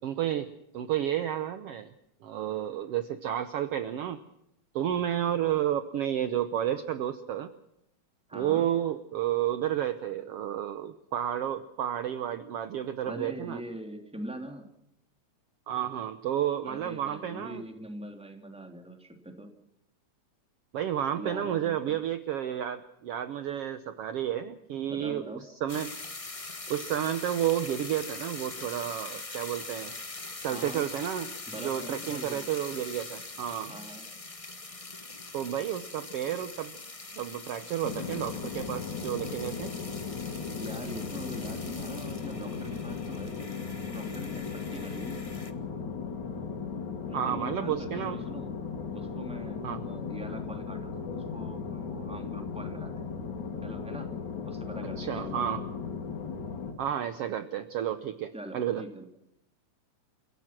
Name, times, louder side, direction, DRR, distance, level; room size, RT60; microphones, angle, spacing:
voice 1, 0.0-1.9 2.2-4.2 4.7-7.5 8.3-13.6 15.7-17.6 20.7-25.2 25.6-25.9 26.7-29.9 30.4-33.7 35.3-36.7 37.2-39.7 47.1-48.2 49.6-49.8 55.0-55.6 56.8-58.8, right 10 dB, 65° right, 11 dB, 1.7 m, -31 dB
voice 2, 8.3-8.7 13.0-14.7 16.6-19.5 21.2-22.0 24.9-25.4 30.5-30.9 31.5-32.4 33.7-34.1 40.6-45.3 47.1-48.5 48.9-53.0 53.6-54.1 54.4-55.4 58.3-59.1, right 1 dB, ahead, 4 dB, 2.8 m, -43 dB
sound 1, 25.7-45.5, left 3 dB, 60° left, 0.3 m, -43 dB
sound 2, 37.8-56.7, left 5 dB, 90° left, 4.3 m, -37 dB
29.5 x 16.5 x 6.0 m, 0.81 s
omnidirectional pair, 3.3 m